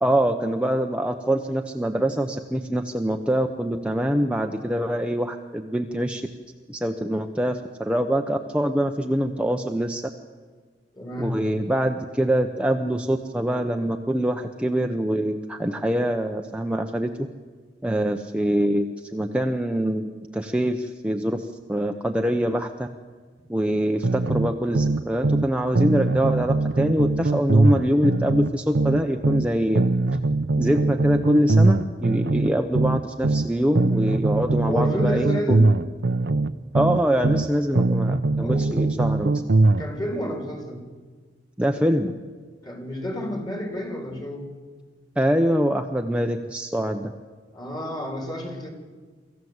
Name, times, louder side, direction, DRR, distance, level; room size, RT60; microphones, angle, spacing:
voice 1, 0.0-6.2 6.7-10.0 11.2-17.1 17.8-22.9 23.5-29.9 30.6-35.3 36.7-39.4 41.6-42.1 45.2-47.1, equal, 5° right, 4 dB, 0.8 m, -24 dB
voice 2, 10.9-11.5 34.7-35.7 38.4-38.7 39.8-40.9 42.6-44.5 47.5-48.7, equal, 25° left, 3 dB, 3.6 m, -30 dB
sound 1, 24.0-25.5 25.8-29.5 29.8-33.5 33.8-37.5 37.8-39.9, right 2 dB, 75° right, 0.7 m, -21 dB
25.0 x 14.5 x 8.0 m, 1.5 s
head